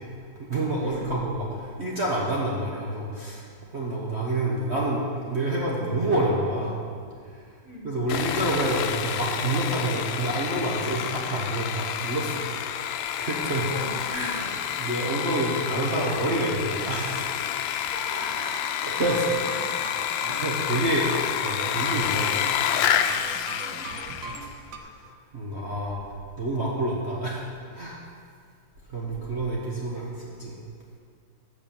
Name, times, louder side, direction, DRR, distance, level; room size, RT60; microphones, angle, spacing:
voice 1, 0.4-3.4 3.7-5.0 5.3-6.8 7.8-12.4 13.2-13.7 14.1-17.3 18.8-19.7 20.3-21.1 21.4-22.6 24.8-24.9 25.3-26.0 26.4-27.5 27.7-28.0 28.9-30.5, right 1 dB, 40° right, -4 dB, 1.3 m, -28 dB
Sawing, 8.1-24.5, left 9 dB, 90° left, 1.3 m, -29 dB
voice 2, 17.9-18.7 23.6-23.9 29.1-29.2, left 1 dB, 45° left, -4 dB, 3.0 m, -40 dB
sound 1, 18.9-24.8, right 5 dB, 80° right, 1.5 m, -41 dB
8.9 x 8.0 x 7.1 m, 2.2 s
omnidirectional pair, 2.0 m